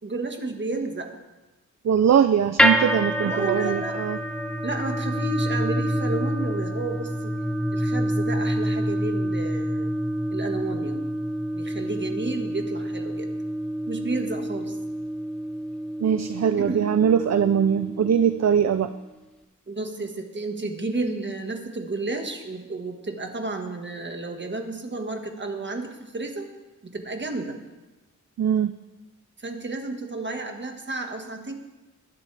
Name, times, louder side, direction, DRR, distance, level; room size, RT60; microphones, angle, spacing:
voice 1, 0.0-1.1 3.2-4.0 4.6-7.3 7.7-9.9 10.3-11.0 11.5-13.3 13.9-14.8 16.6-16.8 19.7-26.5 26.8-27.6 29.4-31.5, right 3 dB, 35° right, 4 dB, 1.6 m, -32 dB
voice 2, 1.8-4.2 16.0-18.9 28.4-28.7, right 8 dB, 55° right, 11 dB, 0.5 m, -21 dB
sound 1, 2.6-18.8, equal, 5° left, 0.8 m, -27 dB
21.0 x 10.5 x 3.4 m, 1.1 s
wide cardioid pair, 120°, 32 cm